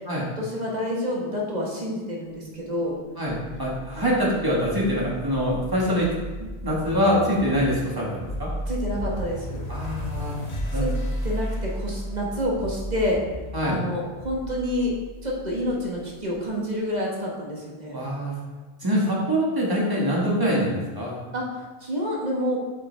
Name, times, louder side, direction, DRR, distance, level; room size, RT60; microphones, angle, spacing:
voice 1, 0.4-3.0 7.4-7.5 8.6-9.6 10.7-10.9 11.2-13.2 13.6-14.9 15.2-18.0 21.3-22.6, equal, 40° right, -3 dB, 1.4 m, -28 dB
voice 2, 3.2-6.1 6.4-8.5 9.7-10.4 10.7-10.9 13.5-13.8 17.9-18.4 18.8-21.2, equal, 20° right, -4 dB, 1.5 m, -24 dB
sound 1, 3.4-16.4, equal, 35° left, 1.0 m, -34 dB
7.3 x 5.5 x 3.4 m, 1.3 s
omnidirectional pair, 1.2 m